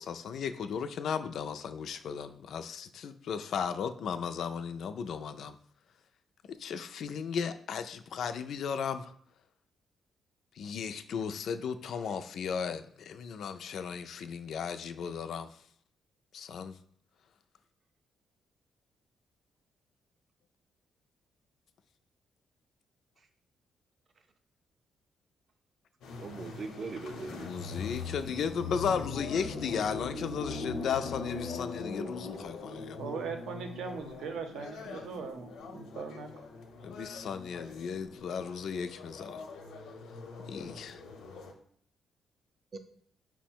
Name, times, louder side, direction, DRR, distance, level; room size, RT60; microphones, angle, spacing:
voice 1, 0.0-5.5 6.5-9.1 10.6-15.6 16.3-16.8 27.3-33.0 36.8-39.4 40.5-41.0, left 6 dB, 60° left, 9 dB, 0.3 m, -35 dB
sound 1, 26.0-41.5, left 4 dB, 85° left, 0.7 m, -42 dB
voice 2, 26.2-27.6 42.7-42.8, right 4 dB, 35° right, 8 dB, 0.4 m, -40 dB
voice 3, 33.0-36.3, right 5 dB, 85° right, 5 dB, 0.6 m, -39 dB
5.5 x 2.1 x 4.4 m, 0.62 s
cardioid pair, 160°, 0 cm